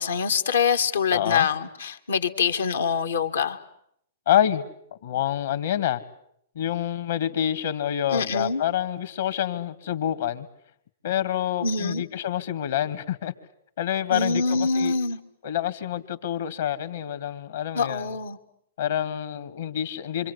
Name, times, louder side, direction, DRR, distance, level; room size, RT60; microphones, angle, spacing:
voice 1, 0.0-3.6 8.1-8.6 11.6-12.0 14.1-15.2 17.7-18.4, left 5 dB, 85° left, 6 dB, 2.2 m, -25 dB
voice 2, 1.1-1.5 4.3-4.7 5.0-6.0 6.6-10.5 11.0-13.3 13.8-15.0 15.4-18.2 18.8-20.3, left 11 dB, 70° left, 11 dB, 2.3 m, -27 dB
26.5 x 26.5 x 8.4 m, 0.71 s
hypercardioid pair, 120°, 0 cm